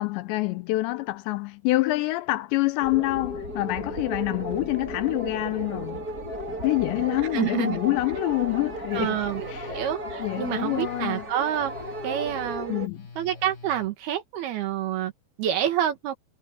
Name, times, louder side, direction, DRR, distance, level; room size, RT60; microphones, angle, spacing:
voice 1, 0.0-6.1 6.6-9.2 9.5-9.8 10.2-11.3 12.7-13.1, left 20 dB, 80° left, 2.7 m, -26 dB
sound 1, 2.8-12.9, right 1 dB, 20° right, 3.2 m, -35 dB
voice 2, 7.3-7.8 8.9-11.7 12.0-12.9 13.2-15.1 15.4-16.1, right 11 dB, 65° right, 3.0 m, -28 dB
Telephone, 8.9-13.9, left 4 dB, 50° left, 7.8 m, -46 dB
omnidirectional pair, 5.4 m